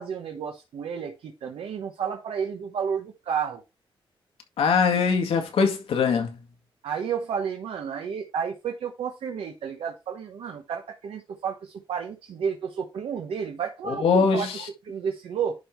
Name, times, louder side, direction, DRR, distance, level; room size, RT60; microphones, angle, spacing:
voice 1, 0.0-3.6 6.8-15.5, right 7 dB, 85° right, 1.1 m, -31 dB
voice 2, 4.6-6.4 13.9-14.6, left 5 dB, 85° left, 2.0 m, -22 dB
11.0 x 3.7 x 4.5 m
wide cardioid pair, 135°, 9 cm